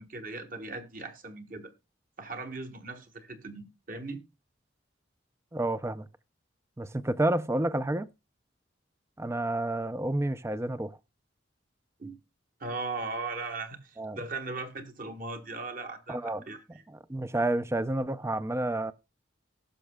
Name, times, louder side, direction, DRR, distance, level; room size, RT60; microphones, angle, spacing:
voice 1, 0.0-1.7 2.2-4.2 12.0-12.2 12.6-16.8, right 3 dB, 45° right, 1.4 m, -38 dB
voice 2, 5.5-6.1 6.8-8.1 9.2-11.0 14.0-14.2 16.1-16.4 16.9-18.9, right 1 dB, 15° right, 0.4 m, -30 dB
18.5 x 6.3 x 2.2 m
head